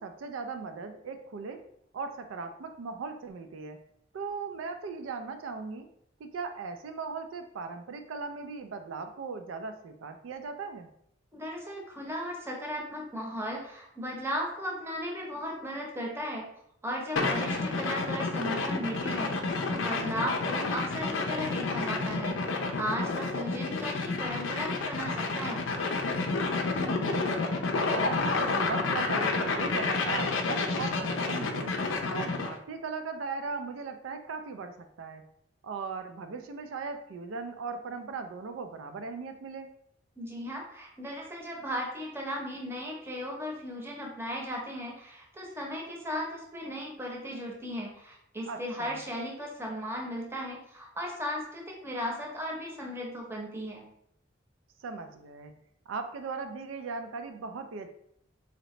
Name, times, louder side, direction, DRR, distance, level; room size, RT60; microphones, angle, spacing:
voice 1, 0.0-1.6 1.9-3.8 4.1-5.9 6.2-10.9 17.4-17.6 26.8-27.6 27.9-31.8 32.1-35.2 35.6-39.7 48.5-49.0 54.8-55.5 55.9-57.9, right 4 dB, 85° right, 7 dB, 0.4 m, -38 dB
voice 2, 11.3-16.5 16.8-19.4 19.7-25.6 40.2-53.9, equal, 15° right, -1 dB, 0.7 m, -36 dB
sound 1, 17.2-32.6, left 3 dB, 75° left, 0.5 m, -30 dB
3.9 x 2.8 x 3.1 m, 0.73 s
head